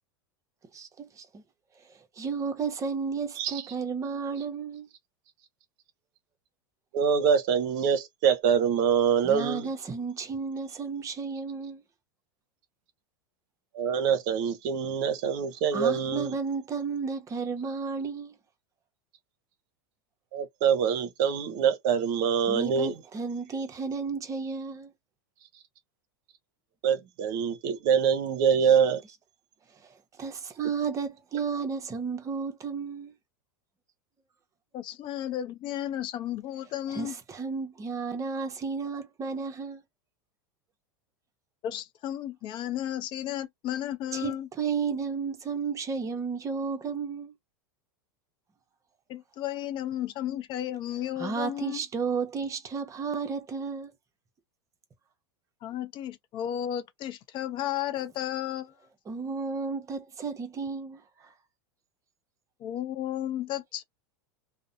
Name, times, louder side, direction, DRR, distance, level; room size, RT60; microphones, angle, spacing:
voice 1, 0.7-1.4 1.9-4.9 9.2-11.8 15.7-18.3 22.5-24.9 29.8-33.1 36.9-39.8 44.1-47.3 51.2-53.9 59.1-61.3, right 5 dB, 25° right, 0.8 m, -33 dB
voice 2, 6.9-9.7 13.7-16.3 20.3-22.9 26.8-29.0, right 7 dB, 60° right, 0.7 m, -25 dB
voice 3, 34.7-37.2 41.6-44.5 49.1-51.8 55.6-58.7 62.6-63.8, left 11 dB, 45° left, 0.5 m, -33 dB
2.6 x 2.1 x 2.6 m
hypercardioid pair, 95°, 12 cm